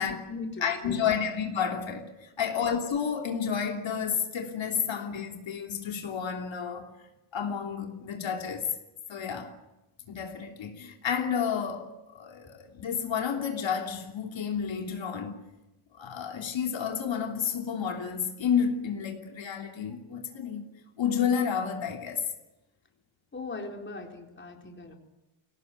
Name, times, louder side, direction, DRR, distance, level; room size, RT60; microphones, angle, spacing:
voice 1, 0.0-1.2 2.4-2.6 4.8-4.9 23.3-25.0, left 3 dB, 25° left, 4.2 m, -40 dB
voice 2, 0.6-6.9 7.3-8.8 9.1-9.5 10.1-15.4 15.9-20.6 21.0-22.2, left 7 dB, 70° left, 3.2 m, -30 dB
24.0 x 18.0 x 9.3 m
cardioid pair, 130°, 48 cm